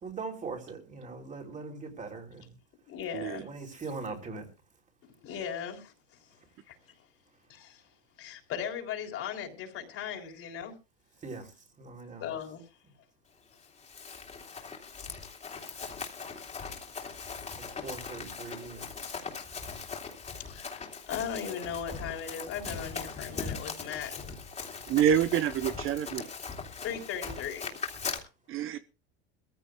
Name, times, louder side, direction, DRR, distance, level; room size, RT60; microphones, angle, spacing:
voice 1, 0.0-2.5 3.4-4.5 11.2-11.5 11.8-12.3 17.7-18.9, right 4 dB, 25° right, 3.3 m, -41 dB
voice 2, 2.9-3.5 5.2-5.9 6.7-6.8 7.5-7.8 8.2-10.7 12.2-12.6 20.4-24.3 26.8-27.7, left 8 dB, 45° left, 3.7 m, -37 dB
Run, 13.6-28.2, left 5 dB, 20° left, 3.0 m, -40 dB
voice 3, 24.9-26.3 28.5-28.8, right 9 dB, 40° right, 0.9 m, -27 dB
22.5 x 15.0 x 2.3 m
supercardioid pair, 110°, 31 cm